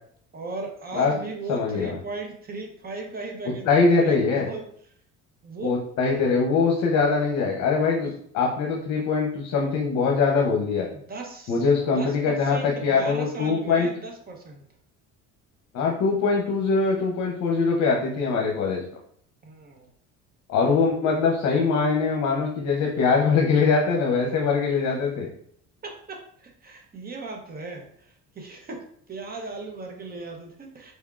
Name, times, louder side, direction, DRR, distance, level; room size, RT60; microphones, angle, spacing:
voice 1, 0.3-4.6 5.4-5.8 8.0-8.1 10.9-14.6 19.4-19.9 26.1-27.9 28.4-28.8 29.1-30.9, right 3 dB, 30° right, 2 dB, 0.8 m, -37 dB
voice 2, 1.5-2.0 3.7-4.5 5.6-10.9 11.5-13.9 15.7-18.8 20.5-25.3, left 4 dB, 65° left, 0 dB, 0.8 m, -22 dB
4.2 x 3.5 x 2.4 m, 0.63 s
cardioid pair, 115°, 31 cm